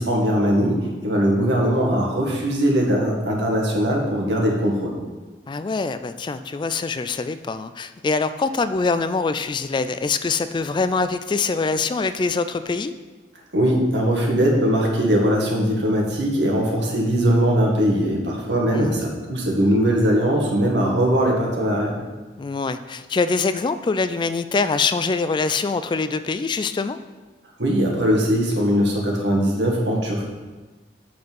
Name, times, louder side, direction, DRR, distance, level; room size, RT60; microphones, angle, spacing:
voice 1, 0.0-4.9 13.5-21.9 27.6-30.3, equal, 80° right, -1 dB, 1.9 m, -20 dB
voice 2, 5.5-12.9 18.7-19.0 22.4-27.0, left 4 dB, 25° left, 11 dB, 0.3 m, -24 dB
7.8 x 5.9 x 5.3 m, 1.3 s
head